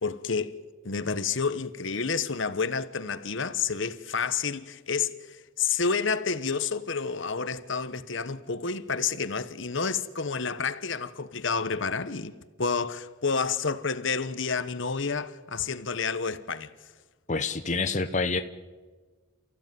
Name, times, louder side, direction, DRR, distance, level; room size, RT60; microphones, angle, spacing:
voice 1, 0.0-0.6 0.8-12.3 12.6-16.7, left 5 dB, 65° left, 1.1 m, -29 dB
voice 2, 17.3-18.4, left 4 dB, 35° left, 0.9 m, -27 dB
29.0 x 15.0 x 9.4 m
head